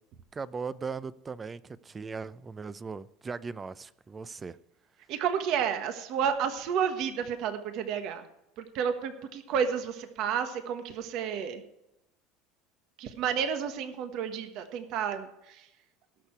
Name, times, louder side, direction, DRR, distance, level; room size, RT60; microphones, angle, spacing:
voice 1, 0.3-4.6, right 5 dB, 20° right, 0.5 m, -38 dB
voice 2, 5.1-8.3 8.6-11.6 13.0-15.7, right 7 dB, 60° right, 1.3 m, -31 dB
18.5 x 6.7 x 4.6 m
supercardioid pair, 130°, 0 cm